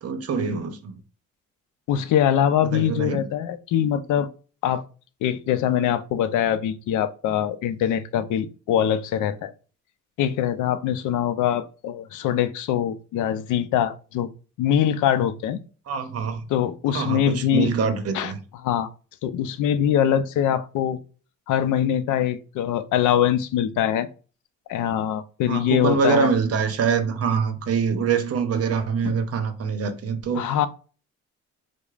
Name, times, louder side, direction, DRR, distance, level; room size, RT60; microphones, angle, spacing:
voice 1, 0.0-1.0 2.6-3.3 15.9-16.4 16.9-18.4 25.5-30.5, right 6 dB, 50° right, 0.7 m, -24 dB
voice 2, 1.9-4.3 4.6-4.8 5.2-9.5 10.2-14.3 14.6-15.6 16.5-17.7 18.1-18.3 18.6-18.9 19.2-21.0 21.5-24.1 24.7-26.3 29.0-29.2 30.3-30.7, left 10 dB, 80° left, 0.5 m, -23 dB
4.7 x 2.1 x 2.4 m
cardioid pair, 90°, 30 cm